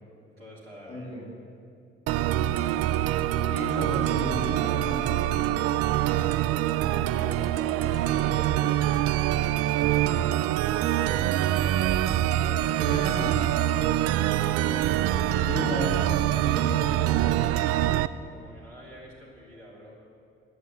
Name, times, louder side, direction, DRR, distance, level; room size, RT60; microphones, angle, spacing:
voice 1, 0.2-1.2 6.0-12.0 12.4-13.9 18.3-20.0, equal, 85° right, -3 dB, 1.7 m, -46 dB
voice 2, 0.9-1.2 2.3-2.8 3.5-5.3 12.8-13.4 15.3-16.8, left 1 dB, 25° left, -3 dB, 3.4 m, -34 dB
sound 1, 2.1-18.1, right 13 dB, 55° right, 0.4 m, -25 dB
11.0 x 8.1 x 7.6 m, 2.6 s
figure-of-eight pair, 45°, 29 cm